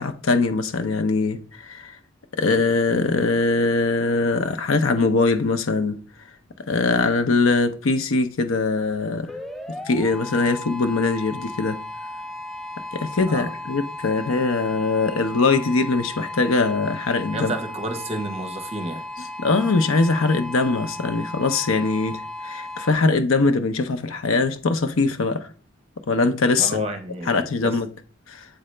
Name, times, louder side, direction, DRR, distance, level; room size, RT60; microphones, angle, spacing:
voice 1, 0.0-2.0 2.3-6.0 6.7-9.3 9.9-11.8 12.9-17.5 19.4-25.5 26.1-26.9 27.3-27.9 28.3-28.5, left 3 dB, 80° left, 0.6 m, -22 dB
sound 1, 9.2-22.9, left 2 dB, ahead, 0.3 m, -35 dB
voice 2, 17.3-19.0 26.6-27.8, right 2 dB, 30° right, 0.9 m, -31 dB
7.9 x 3.8 x 3.2 m
head